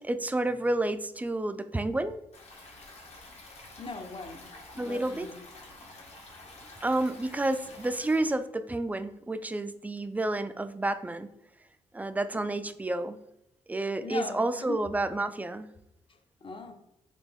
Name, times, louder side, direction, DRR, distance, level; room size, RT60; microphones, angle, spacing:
voice 1, 0.0-2.2 4.8-5.3 6.8-11.3 11.9-13.2 13.7-15.7, right 2 dB, 10° right, 0.4 m, -30 dB
Stream, 2.3-8.3, left 2 dB, 60° left, 1.4 m, -49 dB
voice 2, 3.8-5.4 12.3-12.6 14.0-14.8 16.4-16.7, left 3 dB, 45° left, 0.8 m, -40 dB
4.2 x 2.8 x 3.5 m
cardioid pair, 65°, 12 cm